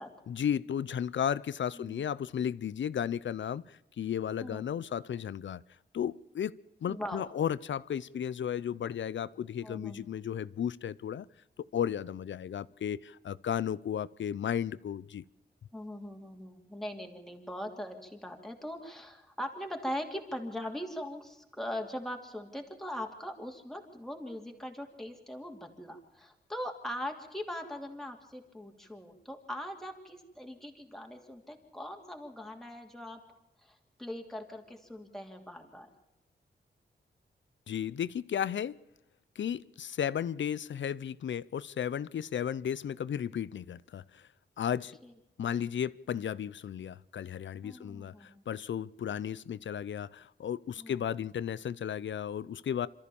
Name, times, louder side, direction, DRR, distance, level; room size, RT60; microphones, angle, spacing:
voice 1, 0.3-5.6 5.9-6.5 6.8-11.3 11.7-15.2 37.7-38.8 39.4-44.2 44.6-45.0 45.4-52.9, left 9 dB, 85° left, 0.7 m, -34 dB
voice 2, 6.9-7.3 9.6-10.1 15.7-33.2 33.6-35.9 45.0-45.1 47.6-48.4 50.8-51.0, left 1 dB, ahead, 2.8 m, -41 dB
27.5 x 14.0 x 7.0 m
wide cardioid pair, 170°, 19 cm